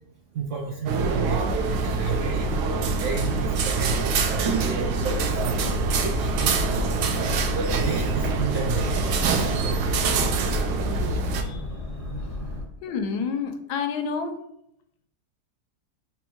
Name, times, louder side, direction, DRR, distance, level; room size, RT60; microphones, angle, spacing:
voice 1, 0.3-4.3 4.8-5.6 6.0-7.1 7.4-8.9 9.2-11.1, right 6 dB, 70° right, 0 dB, 0.7 m, -32 dB
sound 1, 0.9-11.4, right 3 dB, 85° right, 1.2 m, -25 dB
Boat Water vehicle, 5.1-12.6, left 1 dB, 25° right, 1.1 m, -35 dB
voice 2, 12.8-14.3, left 5 dB, 80° left, 6 dB, 1.2 m, -29 dB
3.5 x 2.8 x 4.4 m, 0.77 s
omnidirectional pair, 1.7 m